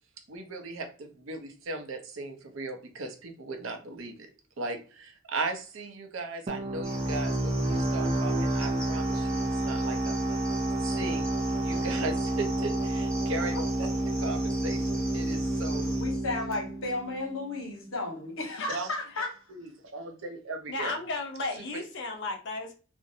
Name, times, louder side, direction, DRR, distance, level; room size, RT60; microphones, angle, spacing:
voice 1, 0.3-4.3 4.6-10.3 10.8-13.9 14.2-16.0 18.7-18.9 19.5-21.0 21.6-21.8, right 3 dB, 75° right, 5 dB, 0.6 m, -37 dB
sound 1, 6.5-17.8, right 1 dB, 30° right, 0.4 m, -29 dB
Cricket, 6.8-16.2, equal, 5° left, 0.9 m, -44 dB
voice 2, 16.0-19.4, left 2 dB, 85° left, 3 dB, 0.9 m, -33 dB
voice 3, 20.7-22.7, left 2 dB, 60° left, 2 dB, 0.6 m, -34 dB
2.5 x 2.0 x 2.7 m, 0.36 s
head